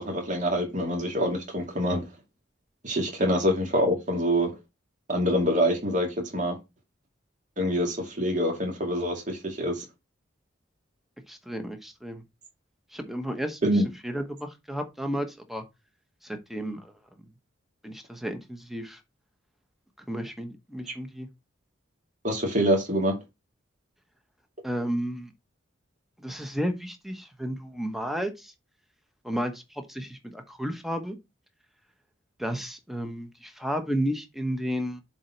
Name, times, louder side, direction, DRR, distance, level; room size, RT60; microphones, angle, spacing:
voice 1, 0.0-2.0 2.8-4.5 5.1-6.1 6.3-6.5 7.6-9.8 13.6-13.9 22.2-23.2, equal, 40° right, 2.4 m, -25 dB
voice 2, 11.3-12.2 12.9-13.6 14.0-15.6 16.2-16.9 17.8-19.0 20.1-21.3 24.6-25.3 26.2-28.5 29.2-31.2 32.4-35.0, equal, ahead, 1.1 m, -32 dB
7.3 x 4.1 x 4.5 m
head